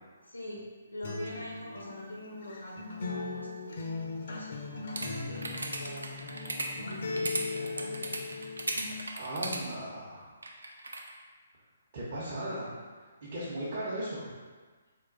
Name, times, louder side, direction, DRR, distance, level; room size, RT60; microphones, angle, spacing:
voice 1, 0.2-0.6 0.9-8.2, left 1 dB, 85° left, -3 dB, 1.0 m, -44 dB
Acoustic guitar, 1.0-9.0, left 3 dB, 55° left, 0.6 m, -39 dB
sound 1, 5.0-9.6 10.4-11.1, right 2 dB, 75° right, 0.5 m, -35 dB
voice 2, 9.1-10.3 11.9-12.7 13.2-14.3, right 1 dB, 45° right, -9 dB, 0.8 m, -36 dB
3.8 x 2.5 x 3.9 m, 1.4 s
figure-of-eight pair, 135°, 0 cm